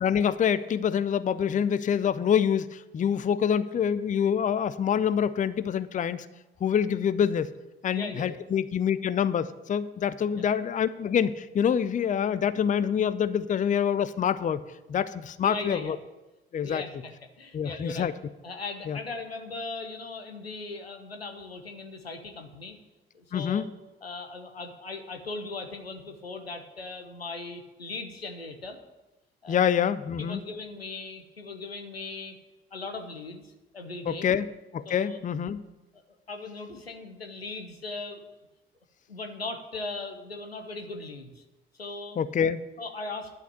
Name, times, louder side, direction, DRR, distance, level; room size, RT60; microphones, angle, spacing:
voice 1, 0.0-6.3 6.6-7.5 7.8-14.6 14.9-16.0 16.5-16.8 17.5-18.1 18.9-19.0 23.3-23.7 29.5-30.4 34.1-34.5 34.7-35.6 42.2-42.6, left 8 dB, 25° left, 14 dB, 0.5 m, -26 dB
voice 2, 7.9-8.4 10.3-10.4 15.4-16.0 16.6-18.1 18.4-22.8 23.1-23.7 24.0-28.8 29.4-29.6 30.2-32.4 32.7-34.3 34.8-35.2 35.9-36.0 36.3-38.3 39.1-41.4 41.7-42.2 42.8-43.3, left 3 dB, 90° left, 6 dB, 0.7 m, -38 dB
10.5 x 5.8 x 8.4 m, 1.1 s
figure-of-eight pair, 45°, 30 cm